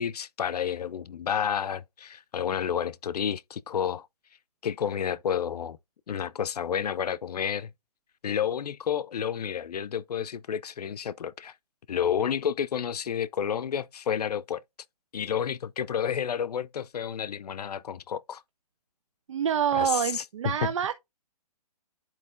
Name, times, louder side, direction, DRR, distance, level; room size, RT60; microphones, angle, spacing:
voice 1, 0.0-4.1 4.6-5.8 6.1-7.7 8.2-11.5 11.9-14.6 15.1-18.4 19.7-20.2 20.6-20.7, left 8 dB, 80° left, 0.6 m, -30 dB
voice 2, 19.3-20.9, right 8 dB, 50° right, 0.7 m, -26 dB
11.0 x 4.5 x 2.6 m
hypercardioid pair, 165°, 20 cm